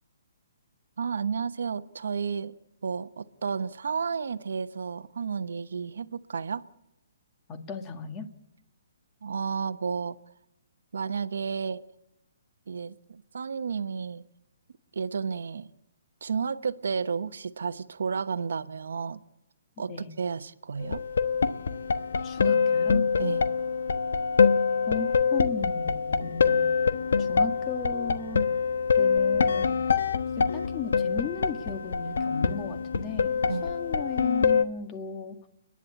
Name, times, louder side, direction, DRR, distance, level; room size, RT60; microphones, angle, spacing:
voice 1, 1.0-2.5 2.8-6.6 9.2-10.2 10.9-11.8 12.7-14.2 14.9-15.7 16.2-19.2 19.8-21.0 23.2-23.4 33.5-33.7, right 6 dB, 80° right, 1.0 m, -32 dB
voice 2, 7.5-8.3 19.9-20.1 22.2-23.1 24.9-26.8 27.2-28.5 29.0-29.8 30.4-35.5, left 5 dB, 20° left, 1.8 m, -36 dB
sound 1, 20.8-34.6, left 5 dB, 80° left, 1.2 m, -25 dB
30.0 x 11.0 x 8.6 m
hypercardioid pair, 165°, 0 cm